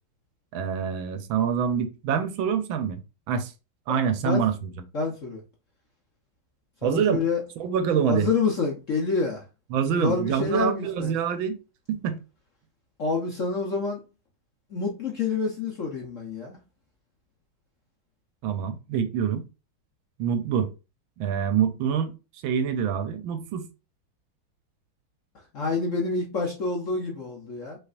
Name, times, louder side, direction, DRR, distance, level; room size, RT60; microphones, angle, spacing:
voice 1, 0.5-3.0 3.3-3.5 3.9-4.7 6.8-7.2 7.6-8.3 9.7-11.6 11.9-12.2 18.4-19.4 20.2-20.7 21.2-22.1 22.4-23.7, right 7 dB, 75° right, 1.4 m, -25 dB
voice 2, 4.9-5.4 6.8-7.4 8.1-9.4 9.9-11.1 13.0-14.0 14.7-16.6 25.5-27.8, left 4 dB, 55° left, 0.9 m, -27 dB
5.6 x 3.4 x 2.5 m
omnidirectional pair, 2.3 m